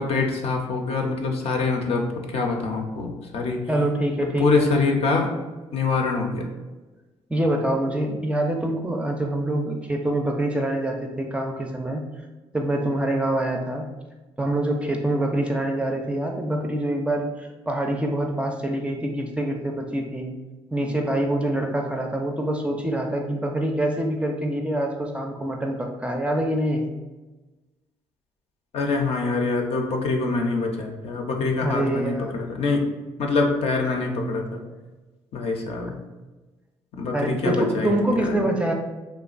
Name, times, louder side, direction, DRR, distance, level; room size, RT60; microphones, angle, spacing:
voice 1, 0.0-2.0 2.3-3.6 4.4-5.3 5.7-6.4 28.7-32.8 33.2-34.6 35.3-35.9 37.0-37.9 38.2-38.4, left 3 dB, 60° left, 1 dB, 0.5 m, -24 dB
voice 2, 3.7-4.7 7.3-12.0 12.5-13.8 14.4-20.3 20.7-26.9 31.6-32.5 37.1-38.7, right 1 dB, 10° right, 2 dB, 0.4 m, -25 dB
2.9 x 2.2 x 2.4 m, 1.2 s
supercardioid pair, 65°, 12 cm